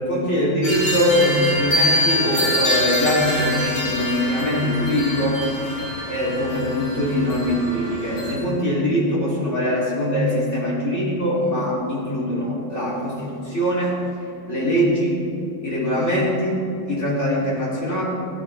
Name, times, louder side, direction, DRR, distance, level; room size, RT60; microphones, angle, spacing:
voice 1, 0.0-5.5 6.1-14.0 14.5-15.2 15.6-18.0, equal, 35° left, -7 dB, 3.3 m, -22 dB
sound 1, 0.6-8.3, left 1 dB, 85° left, 3.3 m, -25 dB
15.0 x 12.0 x 3.3 m, 2.7 s
omnidirectional pair, 2.1 m